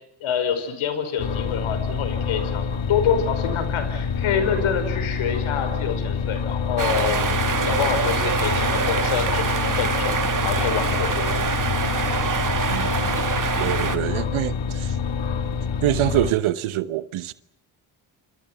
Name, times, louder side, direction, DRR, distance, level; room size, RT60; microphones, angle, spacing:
voice 1, 0.2-7.2 7.5-10.2 10.4-11.6 13.6-13.8, left 7 dB, 80° left, 5.4 m, -26 dB
sound 1, 1.2-16.3, left 6 dB, 65° left, 2.3 m, -27 dB
sound 2, 6.8-14.0, right 5 dB, 40° right, 2.6 m, -25 dB
voice 2, 13.6-15.0 15.8-17.3, right 14 dB, 80° right, 1.1 m, -25 dB
28.0 x 27.0 x 5.9 m
supercardioid pair, 50°, 48 cm